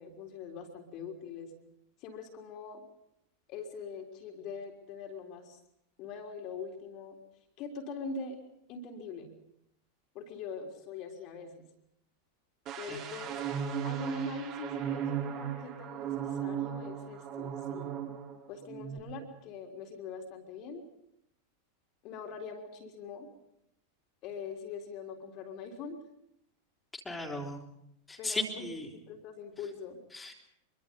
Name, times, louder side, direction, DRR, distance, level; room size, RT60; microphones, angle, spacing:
voice 1, 0.0-1.5 2.0-2.8 3.5-5.6 6.0-7.2 7.6-8.4 8.7-9.3 10.1-11.6 12.8-13.4 13.8-18.0 18.5-20.8 22.0-23.3 24.2-26.0 28.2-30.0, left 4 dB, 40° left, 1 dB, 3.9 m, -42 dB
sound 1, 12.7-18.4 18.7-19.0, right 8 dB, 40° right, 5.6 m, -36 dB
voice 2, 27.1-27.7 28.1-28.9 30.1-30.3, left 2 dB, 10° left, 1 dB, 3.9 m, -36 dB
25.5 x 24.0 x 5.5 m, 0.76 s
figure-of-eight pair, 90°, 0 cm